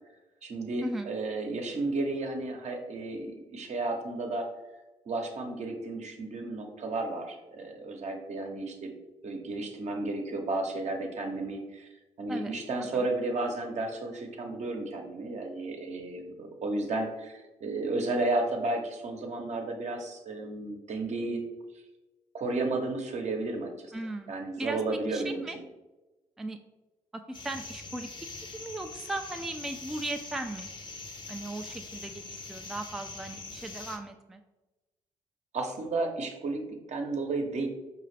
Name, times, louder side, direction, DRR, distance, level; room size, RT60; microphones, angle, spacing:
voice 1, 0.4-4.5 5.1-8.9 9.2-11.9 12.2-21.4 22.3-23.9 24.3-25.4 35.5-37.7, right 2 dB, 55° right, 3 dB, 0.8 m, -33 dB
voice 2, 23.9-24.3 24.6-24.8 25.1-25.6 26.4-26.6 27.1-28.1 28.5-30.7 31.3-34.4, right 2 dB, 5° right, 5 dB, 0.3 m, -37 dB
sound 1, 27.3-34.0, left 3 dB, 35° left, 0.6 m, -43 dB
4.7 x 2.4 x 3.2 m, 1.1 s
hypercardioid pair, 45°, 14 cm